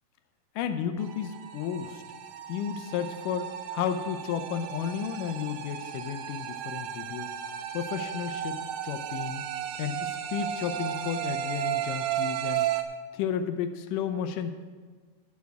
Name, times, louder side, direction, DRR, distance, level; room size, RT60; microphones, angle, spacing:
voice 1, 0.6-2.0 2.5-7.3 7.7-9.4 9.8-12.7 13.1-14.5, left 8 dB, 80° left, 8 dB, 2.0 m, -32 dB
sound 1, 1.0-12.8, right 10 dB, 80° right, 2.2 m, -34 dB
12.0 x 8.2 x 4.6 m, 1.5 s
omnidirectional pair, 4.3 m